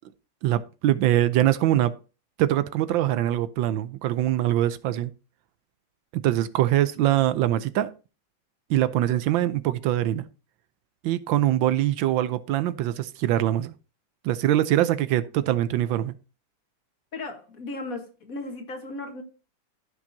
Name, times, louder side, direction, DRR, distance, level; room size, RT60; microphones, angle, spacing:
voice 1, 0.4-1.9 2.4-5.1 6.1-7.9 8.7-10.3 11.0-13.7 14.2-16.2, right 13 dB, 80° right, 1.3 m, -23 dB
voice 2, 17.1-19.2, left 2 dB, 45° left, 1.8 m, -36 dB
14.5 x 6.0 x 2.7 m
omnidirectional pair, 2.1 m